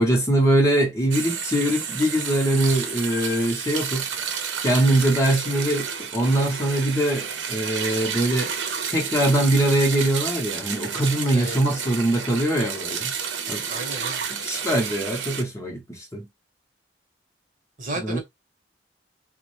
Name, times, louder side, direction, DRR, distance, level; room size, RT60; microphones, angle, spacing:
voice 1, 0.0-4.1 4.6-13.1 13.5-13.7 14.3-16.3 18.0-18.2, right 1 dB, 15° left, 0.8 m, -22 dB
sound 1, 1.1-15.4, right 7 dB, 90° right, 0.7 m, -31 dB
voice 2, 13.7-14.3 17.8-18.2, right 2 dB, 45° right, 0.9 m, -32 dB
3.5 x 2.1 x 3.0 m
head